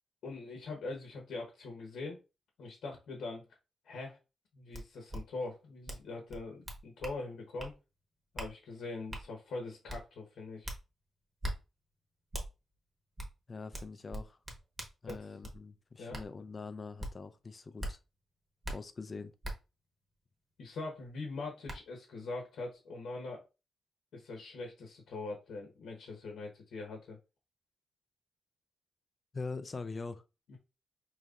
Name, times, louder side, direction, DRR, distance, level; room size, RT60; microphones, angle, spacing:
voice 1, 0.2-2.2 2.6-3.5 3.8-4.2 4.5-7.7 8.3-10.7 15.1-15.3 16.0-16.2 20.6-23.4 24.1-27.2 30.5-30.6, left 3 dB, 80° left, 1.0 m, -42 dB
sound 1, 4.7-4.8 5.1-5.2 5.9-6.0 6.3-7.2 7.6-7.7 8.4-8.5 9.1-9.2 9.9-10.0 10.6-10.8 11.4-11.6 12.3-12.5 13.2-13.3 13.7-15.6 16.1-16.3 17.0-17.1 17.8-17.9 18.6-18.8 19.4-19.5 21.0-21.1 21.7-21.8, right 1 dB, 20° right, 0.9 m, -39 dB
voice 2, 13.5-14.4 15.0-18.0 18.7-19.3 29.3-30.2, left 4 dB, 30° left, 0.4 m, -43 dB
5.2 x 3.0 x 2.4 m
wide cardioid pair, 155°, 0 cm